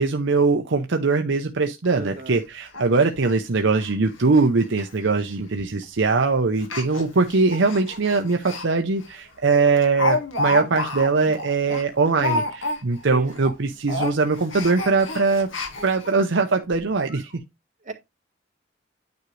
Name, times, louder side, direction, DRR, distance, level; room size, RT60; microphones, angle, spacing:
voice 1, 0.0-15.5 15.8-17.3, right 4 dB, 70° right, 0.8 m, -21 dB
Speech, 1.8-1.9 2.3-2.4 2.7-2.8 3.2-3.3 3.8-3.9 4.2-4.5 4.7-4.8 5.6-5.8 6.6-8.7 9.0-9.1 9.5-13.1 13.3-13.6 13.8-16.1 16.7-16.8 17.1-17.2, left 2 dB, 90° left, 1.8 m, -29 dB
voice 2, 1.9-2.4 13.1-13.4 16.2-16.3 17.8-17.9, right 2 dB, 40° right, 1.9 m, -36 dB
9.4 x 5.1 x 3.2 m
head